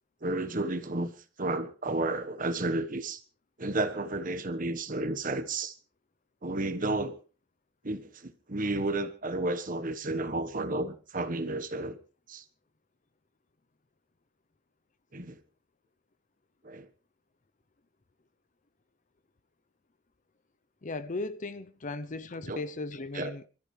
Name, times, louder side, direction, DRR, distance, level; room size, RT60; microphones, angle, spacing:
voice 1, 0.2-1.1 1.4-3.2 3.6-5.7 6.4-7.2 7.8-12.0 12.3-12.4 15.1-15.4 16.6-16.9 22.5-22.6 23.1-23.3, right 2 dB, 45° right, 1.3 m, -32 dB
voice 2, 20.8-23.5, left 2 dB, 40° left, 0.7 m, -37 dB
26.0 x 13.5 x 3.3 m
head